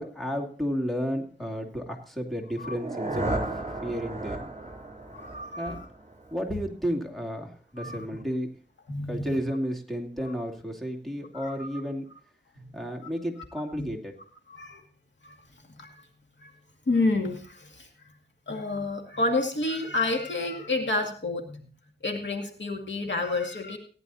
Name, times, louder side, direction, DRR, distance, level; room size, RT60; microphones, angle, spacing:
voice 1, 0.0-3.5 3.8-4.5 5.6-5.8 6.3-8.5 9.1-12.0 12.7-14.1, equal, ahead, 1 dB, 2.5 m, -32 dB
sound 1, 2.5-6.5, right 2 dB, 40° right, 3.1 m, -34 dB
voice 2, 5.1-5.9 7.8-8.1 8.9-9.4 10.3-10.4 11.3-11.8 12.6-12.7 13.0-13.1 13.8-13.9 14.5-14.8 15.2-15.4 15.7-16.0 16.4-16.5 16.9-17.9 18.5-21.7 22.0-23.8, left 2 dB, 80° left, 3 dB, 2.2 m, -30 dB
18.0 x 10.5 x 2.7 m, 0.42 s
wide cardioid pair, 50°, 18 cm